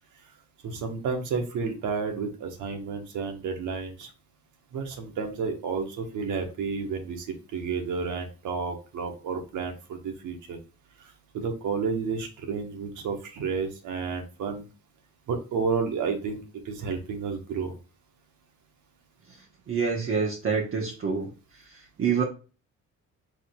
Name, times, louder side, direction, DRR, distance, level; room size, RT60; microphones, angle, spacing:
voice 1, 0.6-4.1 4.7-7.3 7.5-10.6 11.0-14.6 15.3-17.7, right 5 dB, 80° right, 5 dB, 1.1 m, -31 dB
voice 2, 19.7-21.3 22.0-22.2, right 6 dB, 45° right, -1 dB, 1.0 m, -26 dB
4.9 x 3.9 x 2.2 m, 0.34 s
cardioid pair, 90°, 30 cm